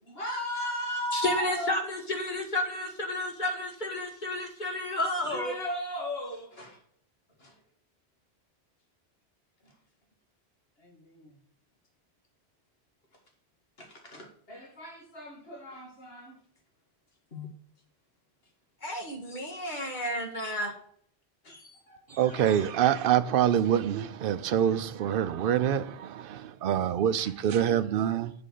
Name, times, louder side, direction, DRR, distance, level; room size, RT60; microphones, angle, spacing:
voice 1, 0.0-1.7 5.2-6.8 7.4-7.5 9.6-9.7 10.8-11.3 13.8-16.4 17.3-17.5 19.5-19.7 21.4-22.7 27.2-27.3, equal, 65° left, 2.2 m, -37 dB
voice 2, 1.1-5.5 18.8-20.7 24.7-24.8, left 1 dB, 45° left, 1.7 m, -31 dB
voice 3, 22.2-28.3, right 10 dB, 60° right, 0.7 m, -26 dB
7.6 x 4.5 x 6.5 m
omnidirectional pair, 1.1 m